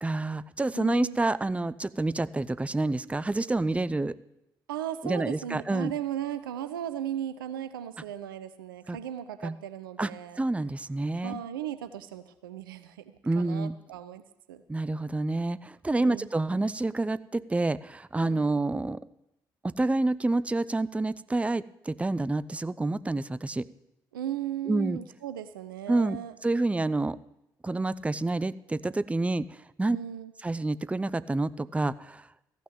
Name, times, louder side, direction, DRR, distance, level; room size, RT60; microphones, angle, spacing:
voice 1, 0.0-4.2 5.0-5.9 8.9-9.0 9.4-9.6 10.0-10.1 10.4-11.4 13.2-13.7 14.7-19.0 19.6-23.7 24.7-25.0 25.9-27.2 27.6-30.0 30.4-32.3, right 2 dB, 10° right, 17 dB, 0.5 m, -28 dB
voice 2, 0.7-1.2 4.7-10.4 11.2-14.6 16.0-16.3 18.2-18.6 24.1-26.3 29.9-30.3, right 10 dB, 80° right, 12 dB, 0.6 m, -37 dB
14.5 x 6.2 x 8.8 m, 0.84 s
figure-of-eight pair, 45°, 11 cm